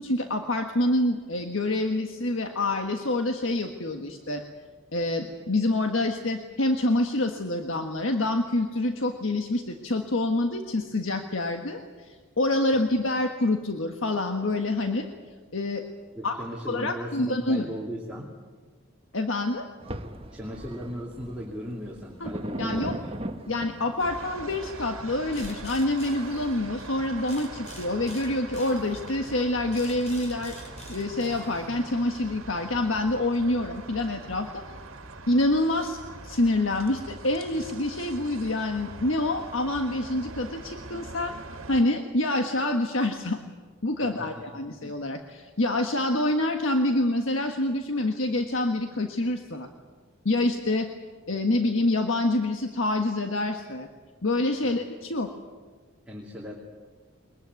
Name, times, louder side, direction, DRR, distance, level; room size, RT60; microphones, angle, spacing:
voice 1, 0.0-4.4 4.9-15.1 15.5-15.8 16.2-16.4 16.7-17.6 19.1-19.6 22.2-22.3 22.6-23.0 23.5-30.6 30.9-34.6 35.3-36.0 36.2-41.3 41.7-43.4 43.8-49.7 50.2-50.9 51.3-53.9 54.2-55.3, left 2 dB, 70° left, 4 dB, 1.5 m, -26 dB
voice 2, 16.1-18.3 20.3-23.2 44.0-44.8 54.6-54.8 56.1-56.5, equal, 5° right, -4 dB, 2.9 m, -38 dB
sound 1, 19.8-25.7, right 1 dB, 25° right, 1.3 m, -39 dB
sound 2, 24.0-41.8, right 3 dB, 80° right, 1.9 m, -42 dB
sound 3, 25.3-26.9 27.3-32.0, left 1 dB, 35° left, 5.3 m, -45 dB
22.5 x 21.5 x 9.4 m, 1.5 s
head